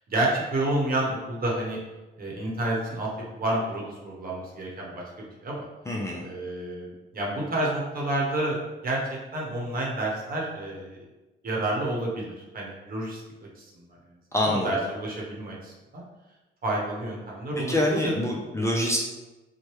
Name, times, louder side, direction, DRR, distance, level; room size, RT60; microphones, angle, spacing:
voice 1, 0.1-1.8 2.2-5.6 6.2-9.0 9.3-11.0 11.4-13.2 13.6-13.8 14.4-16.0 16.6-18.3, right 1 dB, 45° right, -3 dB, 1.0 m, -29 dB
voice 2, 5.9-6.2 14.3-14.7 17.6-19.0, left 1 dB, 15° left, -2 dB, 0.4 m, -25 dB
3.1 x 2.1 x 3.1 m, 1.1 s
cardioid pair, 90°, 20 cm